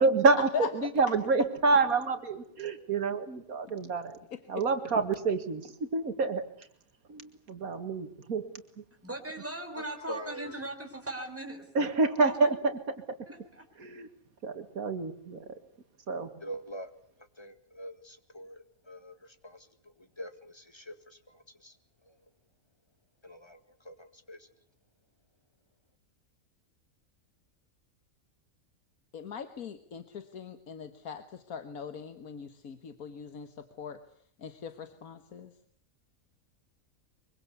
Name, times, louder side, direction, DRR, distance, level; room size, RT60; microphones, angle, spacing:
voice 1, 0.0-4.2 4.5-6.5 7.1-8.6 11.8-12.8 13.8-14.1 14.4-15.4 16.1-16.3, right 3 dB, 90° right, 8 dB, 2.4 m, -28 dB
voice 2, 9.0-11.7 12.2-12.5 13.3-13.7, right 1 dB, 10° right, 3 dB, 4.1 m, -39 dB
voice 3, 10.1-10.5 16.4-16.9 17.4-19.7 20.0-21.7 22.1-22.2 23.2-24.5, equal, 20° left, 8 dB, 2.0 m, -44 dB
voice 4, 29.1-34.0 34.4-35.5, left 7 dB, 90° left, 9 dB, 1.8 m, -40 dB
24.0 x 23.5 x 8.3 m, 0.63 s
omnidirectional pair, 1.5 m